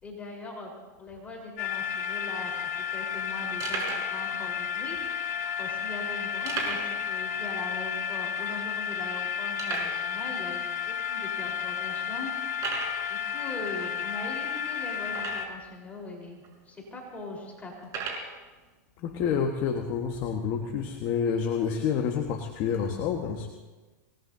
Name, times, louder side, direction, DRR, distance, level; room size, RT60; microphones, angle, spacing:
voice 1, 0.0-0.7 1.0-2.5 2.9-5.0 5.6-12.3 13.0-17.9, left 2 dB, 15° left, -1 dB, 4.1 m, -41 dB
sound 1, 1.6-15.5, left 8 dB, 70° left, 2.3 m, -32 dB
sound 2, 2.1-2.2 2.4-2.6 3.1-3.2 3.6-4.1 4.9-5.0 6.5-7.0 7.3-7.4 7.9-8.0 8.6-8.7 9.6-10.0 10.8-10.9 11.5-11.6 12.5-13.0 15.1-15.7 16.4-16.5 17.8-18.3, right 5 dB, 35° right, 5.0 m, -34 dB
voice 2, 19.0-23.5, left 7 dB, 45° left, 3 dB, 1.4 m, -28 dB
26.5 x 19.5 x 2.7 m, 1.2 s
hypercardioid pair, 130°, 10 cm